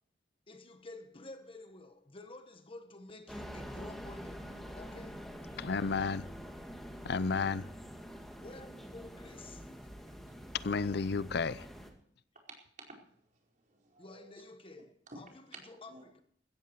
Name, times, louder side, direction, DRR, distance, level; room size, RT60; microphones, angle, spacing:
voice 1, 0.5-5.3 8.4-9.7 14.0-15.3 15.7-16.2, left 2 dB, 30° left, 1.2 m, -51 dB
sound 1, 3.3-11.9, equal, ahead, 2.2 m, -46 dB
voice 2, 5.6-6.3 7.0-7.7 10.6-11.7, left 4 dB, 60° left, 0.5 m, -32 dB
voice 3, 12.5-14.4 15.1-16.2, right 2 dB, 45° right, 4.7 m, -54 dB
16.0 x 14.0 x 4.6 m
head